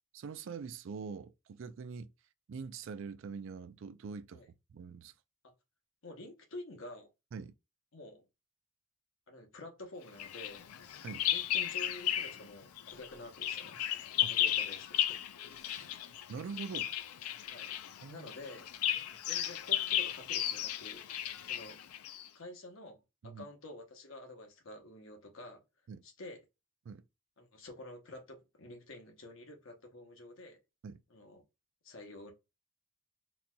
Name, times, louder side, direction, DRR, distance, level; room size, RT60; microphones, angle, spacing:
voice 1, 0.1-2.1 2.5-4.4 4.7-5.1 7.3-7.5 11.0-11.3 14.2-14.3 15.6-15.9 16.3-16.9 18.0-18.3 23.2-23.5 25.9-26.0 26.9-27.0 30.8-31.0, right 5 dB, 60° right, 0.3 m, -44 dB
voice 2, 6.0-7.1 7.9-8.2 9.3-10.7 11.3-13.8 14.3-15.2 17.5-17.7 18.1-18.7 19.2-21.8 22.3-23.0 23.2-25.6 26.0-26.4 27.4-30.6 31.1-31.4 31.8-32.3, left 1 dB, 65° left, 0.9 m, -49 dB
Bird vocalization bird call bird song, 10.2-12.5 12.8-22.3, left 11 dB, 85° left, 0.4 m, -35 dB
4.1 x 2.7 x 2.2 m
head